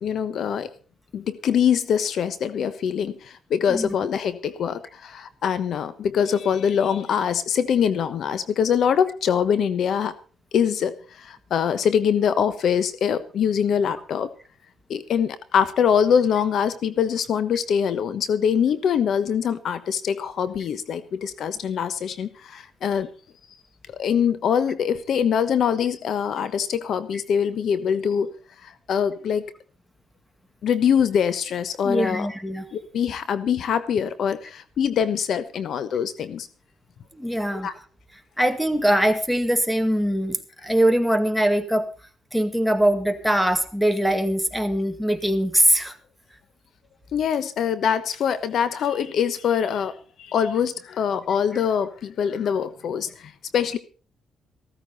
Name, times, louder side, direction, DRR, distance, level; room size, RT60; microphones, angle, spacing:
voice 1, 0.0-0.7 1.1-10.1 10.5-14.3 14.9-23.1 23.9-28.3 28.6-29.4 30.6-32.3 32.7-36.5 37.6-37.7 47.1-53.8, left 8 dB, 65° left, 13 dB, 1.1 m, -23 dB
voice 2, 31.8-32.7 37.1-37.7 38.4-41.9 42.3-46.0, right 1 dB, ahead, 10 dB, 2.0 m, -22 dB
15.5 x 14.0 x 4.2 m, 0.36 s
cardioid pair, 90°, 0 cm